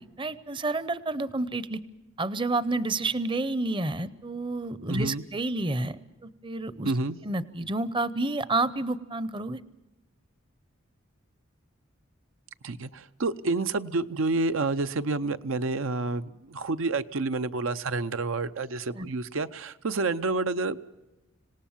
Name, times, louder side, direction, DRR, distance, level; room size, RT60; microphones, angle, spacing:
voice 1, 0.2-1.8 2.2-6.9 7.2-9.6 19.0-19.1, right 2 dB, 25° right, 17 dB, 0.7 m, -29 dB
voice 2, 4.9-5.2 6.8-7.2 12.6-20.8, right 3 dB, 85° right, 11 dB, 0.7 m, -29 dB
26.5 x 18.0 x 7.2 m, 1.0 s
head